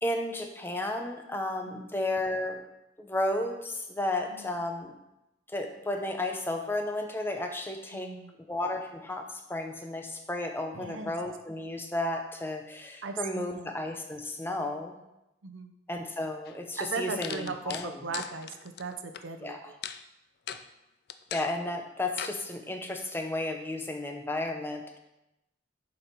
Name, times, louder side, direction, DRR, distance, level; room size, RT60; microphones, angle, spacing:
voice 1, 0.0-2.6 3.0-4.9 5.5-8.1 8.5-15.0 15.9-18.1 19.4-19.6 21.3-25.0, left 1 dB, 10° left, 4 dB, 0.6 m, -33 dB
voice 2, 7.9-8.4 10.7-11.1 13.0-13.7 15.4-15.7 16.8-19.8, right 4 dB, 90° right, 8 dB, 0.7 m, -38 dB
sound 1, 16.5-16.6 17.2-19.2 19.8-20.0 20.5-20.6 21.1-21.5 22.2-22.4, left 9 dB, 55° left, 0.4 m, -38 dB
6.9 x 5.3 x 4.5 m, 0.91 s
head